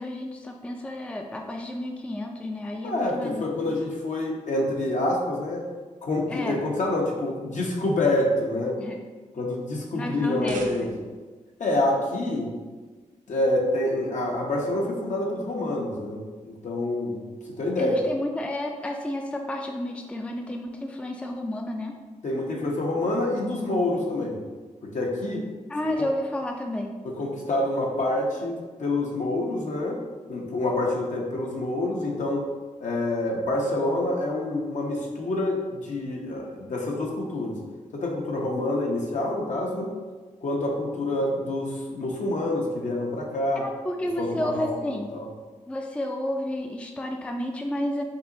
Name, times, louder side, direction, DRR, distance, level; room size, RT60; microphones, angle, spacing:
voice 1, 0.0-3.8 6.3-6.6 8.8-9.0 9.9-10.9 17.8-22.0 25.7-27.0 43.6-45.1 45.7-48.0, left 1 dB, 10° left, 2 dB, 0.4 m, -31 dB
voice 2, 2.8-5.6 6.0-8.8 9.3-10.9 11.6-12.5 13.3-16.2 16.4-17.2 17.6-18.0 22.2-24.4 24.8-25.5 27.0-30.0 30.3-32.5 32.8-37.6 37.9-40.0 40.4-43.7 44.2-44.8 45.1-45.3, left 1 dB, 65° left, -2 dB, 0.9 m, -27 dB
sound 1, 10.2-11.3, right 4 dB, 80° right, 0.5 m, -43 dB
5.4 x 2.8 x 2.7 m, 1.4 s
cardioid pair, 75°, 13 cm